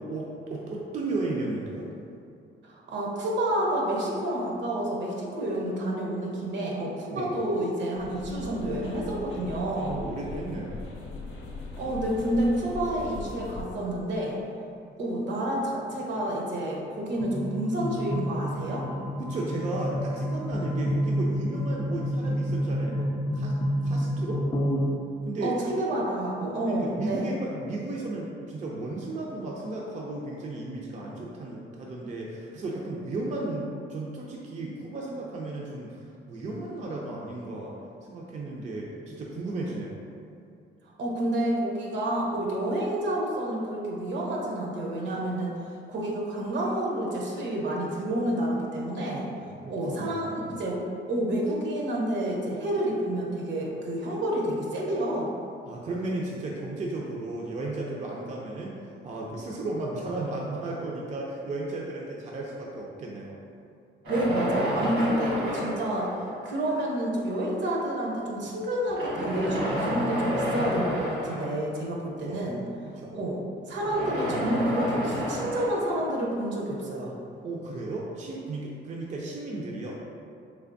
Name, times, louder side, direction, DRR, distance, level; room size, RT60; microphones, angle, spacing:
voice 1, 0.0-1.9 7.1-7.3 9.8-10.8 19.2-24.5 25.2-25.5 26.7-40.0 49.6-50.5 55.6-58.8 59.0-63.4 72.3-72.4 72.8-73.1 77.4-80.0, right 2 dB, 35° right, -3 dB, 0.4 m, -34 dB
voice 2, 2.6-10.0 11.8-14.4 15.0-18.9 25.4-27.3 41.0-45.5 45.9-49.3 49.7-50.8 51.1-55.3 64.1-66.2 66.4-72.6 73.1-73.4 73.7-77.1, right 1 dB, 65° right, -2 dB, 0.7 m, -29 dB
sound 1, 8.0-13.6, left 3 dB, 80° left, 0.6 m, -40 dB
sound 2, 17.2-24.9, equal, 25° left, 0.4 m, -29 dB
sound 3, 64.0-66.8 67.6-67.7 68.8-71.8 73.7-76.7, equal, 85° right, 1.5 m, -30 dB
3.3 x 3.2 x 2.5 m, 2.4 s
cardioid pair, 90°, 20 cm